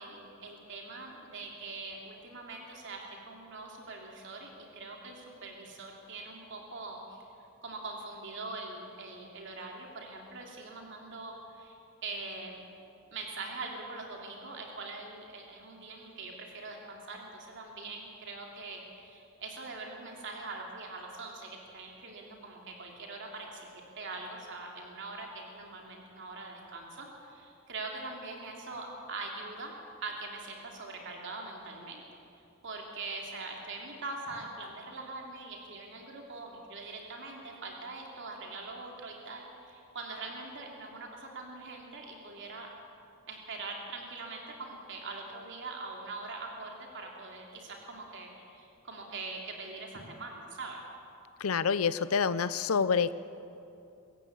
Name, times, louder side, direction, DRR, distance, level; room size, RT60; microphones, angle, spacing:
voice 1, 0.0-7.2 7.6-12.6 13.1-23.7 24.0-29.7 30.0-32.0 32.6-42.7 43.3-50.8, right 3 dB, 60° right, 0 dB, 3.0 m, -43 dB
voice 2, 51.4-53.1, left 6 dB, 90° left, 15 dB, 0.6 m, -27 dB
24.5 x 14.5 x 8.5 m, 2.6 s
head